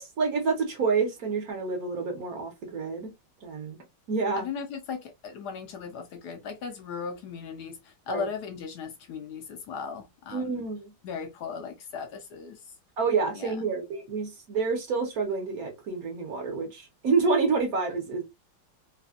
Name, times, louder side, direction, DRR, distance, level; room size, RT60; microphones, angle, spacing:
voice 1, 0.0-3.1 3.4-3.8 4.1-4.5 8.1-8.3 10.3-10.9 13.0-18.2, right 4 dB, 60° right, 1.2 m, -28 dB
voice 2, 4.3-10.7 11.0-12.6 13.3-13.7, left 6 dB, 75° left, 1.1 m, -37 dB
3.3 x 2.3 x 2.3 m
omnidirectional pair, 2.0 m